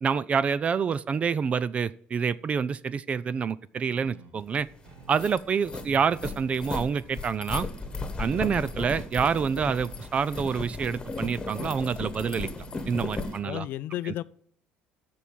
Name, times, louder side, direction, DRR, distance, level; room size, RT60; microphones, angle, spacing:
voice 1, 0.0-4.7 5.1-7.7 8.2-12.5 12.9-13.6 14.0-14.1, right 6 dB, 35° right, 18 dB, 0.4 m, -27 dB
sound 1, 3.9-13.5, right 3 dB, 85° right, 2.1 m, -51 dB
sound 2, 4.5-4.6 5.0-13.4, left 3 dB, 20° left, 1.4 m, -35 dB
voice 2, 13.0-14.2, left 14 dB, 65° left, 17 dB, 0.5 m, -34 dB
14.0 x 4.8 x 7.4 m, 0.62 s
cardioid pair, 115°, 4 cm